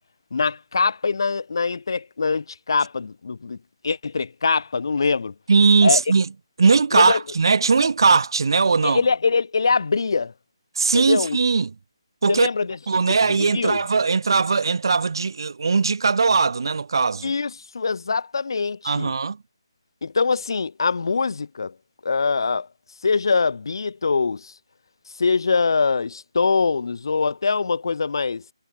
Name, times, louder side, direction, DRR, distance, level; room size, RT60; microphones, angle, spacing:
voice 1, 0.3-3.6 3.8-5.3 5.8-6.0 6.9-7.2 8.8-10.3 10.9-11.4 12.3-12.8 13.1-13.8 17.2-19.1 20.0-21.7 22.0-22.7 23.0-24.5 25.2-28.4, left 4 dB, 55° left, 4.3 m, -23 dB
voice 2, 5.5-6.3 6.6-9.0 10.7-11.7 12.2-12.5 12.9-17.3 18.8-19.4, right 4 dB, 55° right, 4.9 m, -19 dB
figure-of-eight pair, 150°, 3 cm